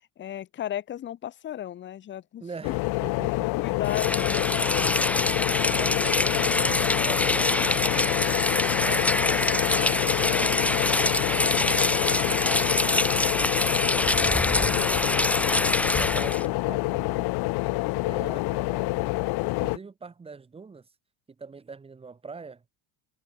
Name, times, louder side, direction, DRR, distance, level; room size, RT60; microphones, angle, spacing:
voice 1, 0.2-2.7 3.6-5.0 5.5-6.2 18.7-18.9, left 11 dB, 25° left, 1.0 m, -35 dB
voice 2, 2.4-3.8 4.2-4.7 5.7-13.2 13.6-15.3 15.9-17.3 18.1-19.2 19.5-20.9 21.4-22.6, right 4 dB, 10° right, 1.7 m, -43 dB
sound 1, 2.6-19.8, left 23 dB, 55° left, 1.3 m, -27 dB
Rain, 3.8-16.4, left 2 dB, 5° left, 0.5 m, -25 dB
Cheering / Applause, 6.3-13.5, right 25 dB, 60° right, 5.9 m, -43 dB
cardioid pair, 170°, 45 cm